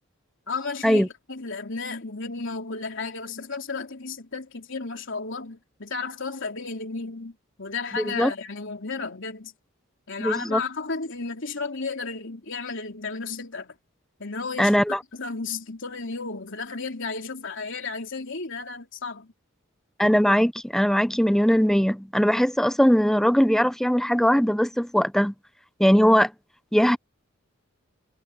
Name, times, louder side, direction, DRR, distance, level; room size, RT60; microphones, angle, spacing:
voice 1, 0.5-9.5 10.1-13.8 14.2-14.7 15.1-19.3, left 4 dB, 65° left, 3.6 m, -33 dB
voice 2, 7.9-8.3 10.2-10.6 14.6-15.0 20.0-25.3 25.8-26.3 26.7-27.0, equal, ahead, 0.8 m, -20 dB
head